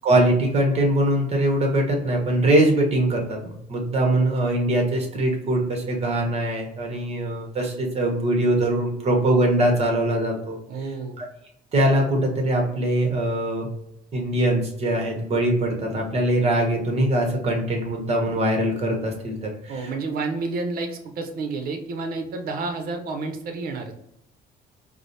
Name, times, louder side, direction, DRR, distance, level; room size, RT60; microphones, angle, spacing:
voice 1, 0.0-10.6 11.2-11.3 11.7-13.7 14.1-19.9, right 1 dB, 40° right, 1 dB, 1.0 m, -22 dB
voice 2, 10.7-11.2 19.7-23.9, right 3 dB, 60° right, 5 dB, 0.7 m, -30 dB
4.7 x 2.0 x 2.7 m, 0.78 s
cardioid pair, 110°, 17 cm